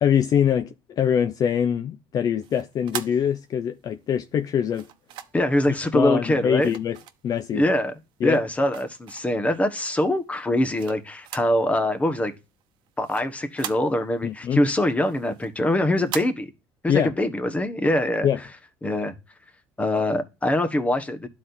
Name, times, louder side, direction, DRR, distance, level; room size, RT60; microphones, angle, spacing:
voice 1, 0.0-4.9 5.9-7.0 7.2-7.6 8.2-8.4 14.2-14.6 16.9-17.1 18.2-18.4, left 8 dB, 45° left, 0.5 m, -23 dB
sound 1, 2.4-3.9 4.7-5.6 6.6-7.7 8.1-9.5 10.0-11.6 11.9-12.0 12.4-14.3 14.7-16.3, right 11 dB, 65° right, 0.9 m, -39 dB
voice 2, 5.3-6.7 7.5-7.9 8.2-12.3 13.0-16.5 16.8-18.3 18.8-19.1 19.8-21.3, left 1 dB, 15° left, 1.2 m, -23 dB
12.0 x 4.3 x 2.6 m
cardioid pair, 105°, 9 cm